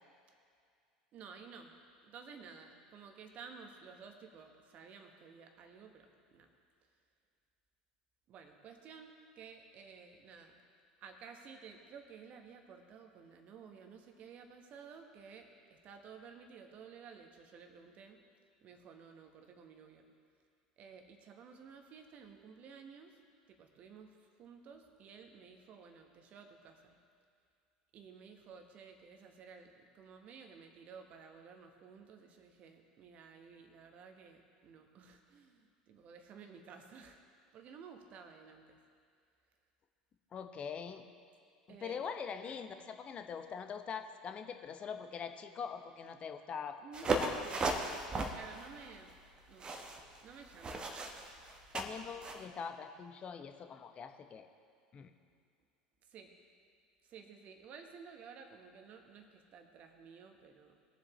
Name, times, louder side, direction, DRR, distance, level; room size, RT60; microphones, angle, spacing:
voice 1, 1.1-1.7 2.0-6.5 8.3-10.6 11.0-18.2 18.6-20.1 20.8-23.2 23.5-27.0 27.9-37.2 37.5-38.8 41.7-42.0 46.8-49.1 49.5-49.8 50.2-51.0 56.0-56.3 57.1-60.8, right 6 dB, 40° right, 5 dB, 1.3 m, -54 dB
voice 2, 40.3-41.0 41.7-46.8 47.0-47.6 51.7-54.5 54.9-55.1, left 6 dB, 35° left, 7 dB, 0.9 m, -43 dB
sound 1, 46.9-52.4, right 2 dB, 25° right, 1.1 m, -37 dB
20.5 x 7.5 x 3.2 m, 2.3 s
figure-of-eight pair, 75°, 4 cm